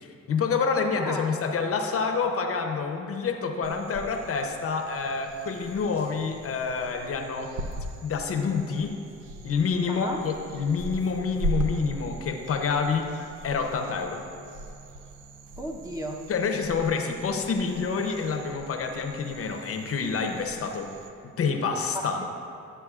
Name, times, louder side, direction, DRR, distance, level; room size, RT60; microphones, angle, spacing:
voice 1, 0.3-7.5 8.0-9.0 9.4-13.1 13.4-14.2 16.3-20.9 21.4-22.2, left 5 dB, 50° left, 4 dB, 0.7 m, -27 dB
voice 2, 1.0-1.3 9.9-10.2 15.6-16.2 21.9-22.2, equal, 10° right, 1 dB, 0.7 m, -34 dB
sound 1, 3.6-21.1, right 1 dB, 80° right, 0.7 m, -39 dB
11.0 x 7.0 x 2.4 m, 2.5 s
cardioid pair, 90°, 30 cm